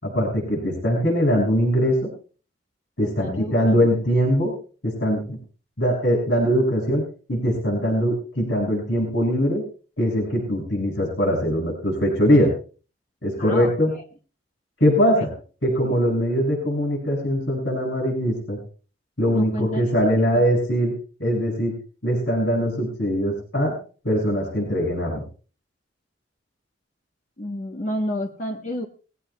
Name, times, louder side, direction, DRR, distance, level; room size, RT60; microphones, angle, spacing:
voice 1, 0.0-2.1 3.0-4.5 4.8-5.4 5.8-7.0 7.3-9.6 10.0-12.5 13.2-13.9 14.8-15.3 15.6-18.6 19.2-20.9 21.2-21.7 22.0-23.7 24.0-25.2, equal, 70° left, 0 dB, 5.9 m, -21 dB
voice 2, 3.0-3.8 13.4-13.7 15.2-15.3 19.3-19.9 20.3-20.4 27.4-28.9, equal, 45° left, 2 dB, 1.1 m, -30 dB
21.0 x 16.5 x 2.3 m, 0.39 s
head